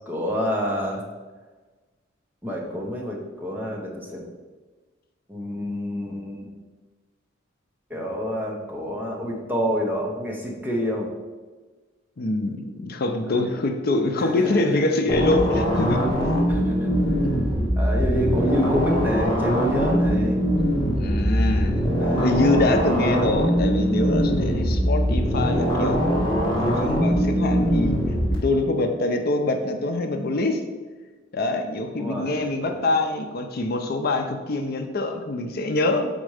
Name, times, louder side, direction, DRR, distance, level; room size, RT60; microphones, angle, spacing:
voice 1, 0.1-1.0 2.4-4.3 5.3-6.5 7.9-11.1 13.3-13.5 14.2-14.8 16.5-16.9 17.8-20.5 22.0-22.7 32.0-32.8, equal, 10° right, -2 dB, 1.0 m, -28 dB
voice 2, 12.2-16.1 21.0-26.0 26.5-28.0 28.4-30.6 31.3-36.1, left 2 dB, 55° left, 5 dB, 0.5 m, -25 dB
sound 1, 15.1-28.4, equal, 25° left, 1.6 m, -22 dB
5.1 x 4.3 x 4.9 m, 1.3 s
head